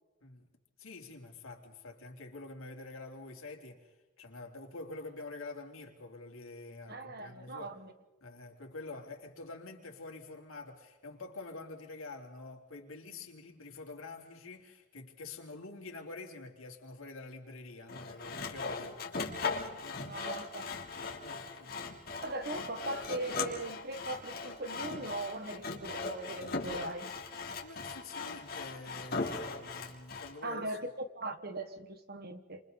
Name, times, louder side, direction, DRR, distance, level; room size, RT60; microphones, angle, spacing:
voice 1, 0.8-7.7 8.2-19.2 19.8-20.0 21.2-22.0 27.4-30.8, left 3 dB, 85° left, 3.4 m, -47 dB
voice 2, 6.9-7.9 18.6-18.7 20.0-20.7 22.2-27.1 30.4-30.9 31.1-32.6, right 2 dB, 50° right, 1.6 m, -39 dB
Sawing, 17.9-30.3, left 4 dB, 45° left, 3.3 m, -39 dB
28.5 x 28.0 x 4.1 m
head